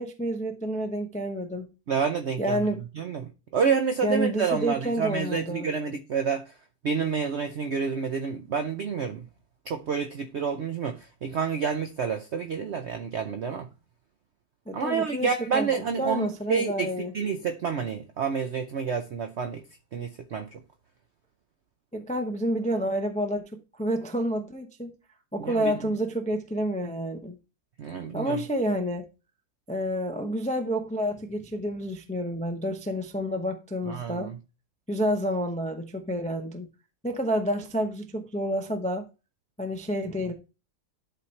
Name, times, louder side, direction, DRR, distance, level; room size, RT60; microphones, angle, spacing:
voice 1, 0.0-1.7 2.4-3.1 4.0-5.7 14.7-15.7 16.0-17.1 21.9-24.9 25.3-27.4 28.1-29.1 29.7-34.3 34.9-36.7 37.0-39.1 39.6-40.3, equal, 10° left, 0.3 m, -29 dB
voice 2, 1.9-2.7 3.0-6.5 6.8-9.3 9.7-13.7 14.7-19.6 19.9-20.5 25.4-25.8 27.8-28.4 33.9-34.4, right 6 dB, 55° right, 0.8 m, -29 dB
11.0 x 4.4 x 3.2 m
omnidirectional pair, 1.7 m